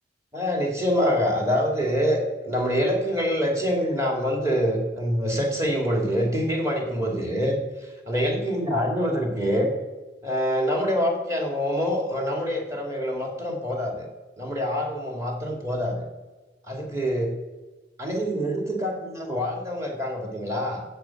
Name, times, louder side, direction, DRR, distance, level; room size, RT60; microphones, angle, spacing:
voice 1, 0.3-7.6 8.1-9.7 10.2-14.0 14.4-16.1 16.7-17.3 18.0-20.8, equal, 15° right, 2 dB, 2.1 m, -25 dB
15.0 x 7.1 x 5.8 m, 1.2 s
head